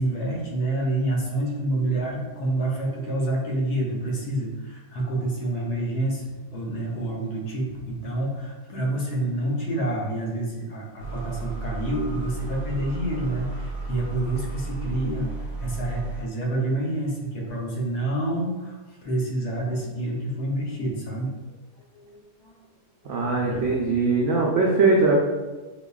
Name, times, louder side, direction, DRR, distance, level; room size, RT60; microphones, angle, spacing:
voice 1, 0.0-21.3 21.9-22.6 23.0-24.1, right 1 dB, 70° left, -2 dB, 1.2 m, -28 dB
sound 1, 11.0-16.2, right 3 dB, 30° right, 1.0 m, -34 dB
voice 2, 23.0-25.1, right 3 dB, 80° right, -3 dB, 0.6 m, -21 dB
5.3 x 2.2 x 2.3 m, 1.2 s
omnidirectional pair, 1.8 m